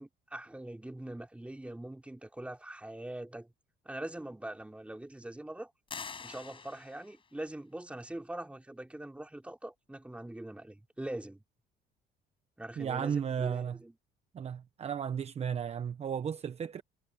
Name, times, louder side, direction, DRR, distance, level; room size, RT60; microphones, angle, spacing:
voice 1, 0.0-3.5 3.9-5.7 6.2-11.4 12.6-13.9, right 1 dB, 5° right, 3.7 m, -43 dB
sound 1, 5.9-7.3, left 5 dB, 30° left, 5.9 m, -45 dB
voice 2, 12.8-13.8 14.3-16.8, right 8 dB, 40° right, 1.0 m, -34 dB
cardioid pair, 110°, 17 cm